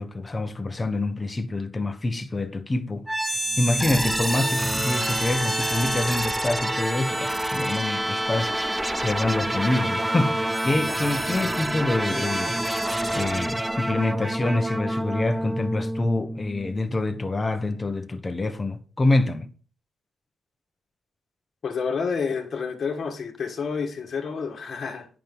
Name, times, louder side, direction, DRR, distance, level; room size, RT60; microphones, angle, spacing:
voice 1, 0.0-8.5 9.0-10.4 10.6-12.6 13.1-19.5, left 2 dB, 25° left, 1.1 m, -26 dB
sound 1, 3.1-16.9, right 1 dB, 10° right, 0.6 m, -27 dB
voice 2, 21.6-25.1, left 5 dB, 55° left, 1.5 m, -29 dB
9.1 x 6.0 x 5.4 m
cardioid pair, 65°, 0 cm